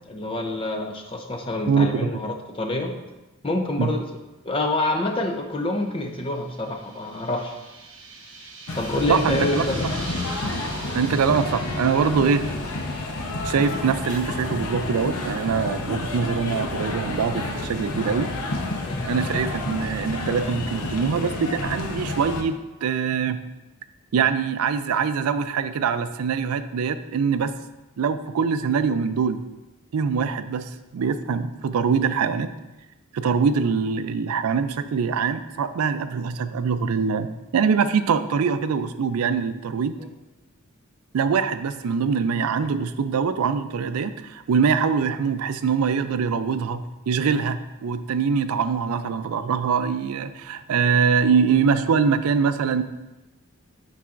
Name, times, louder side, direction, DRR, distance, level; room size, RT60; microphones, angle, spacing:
voice 1, 0.1-2.9 3.4-4.0 4.4-7.6 8.8-9.9 18.9-19.1, left 2 dB, 25° left, 4 dB, 0.5 m, -27 dB
voice 2, 1.7-2.2 3.8-3.9 9.1-9.7 10.9-12.5 13.4-18.3 19.1-22.6 22.8-23.4 24.1-27.5 28.0-29.4 29.9-32.5 33.1-39.9 41.1-52.8, right 6 dB, 85° right, 11 dB, 0.4 m, -23 dB
sound 1, 6.0-14.3, right 3 dB, 55° right, 1.5 m, -42 dB
sound 2, 8.7-22.4, left 2 dB, 85° left, 0.7 m, -30 dB
10.0 x 4.0 x 2.5 m, 1.1 s
head